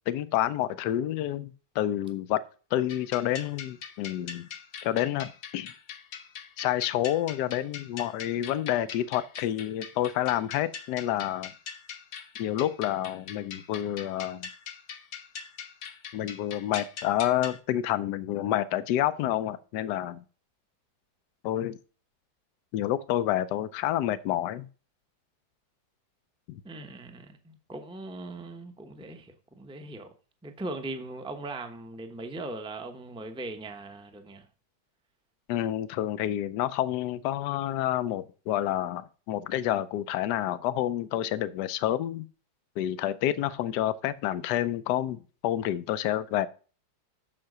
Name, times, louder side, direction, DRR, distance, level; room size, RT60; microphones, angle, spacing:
voice 1, 0.1-2.4 2.7-4.5 4.8-5.7 6.6-11.5 12.4-14.5 16.1-20.2 21.4-21.8 22.7-24.7 26.5-26.6 35.5-42.3 42.8-46.5, left 12 dB, 80° left, 1.2 m, -29 dB
sound 1, 2.9-17.6, left 7 dB, 60° left, 1.2 m, -42 dB
voice 2, 26.6-30.1 30.4-34.5, right 2 dB, 5° right, 0.6 m, -39 dB
7.7 x 5.8 x 6.5 m
omnidirectional pair, 1.8 m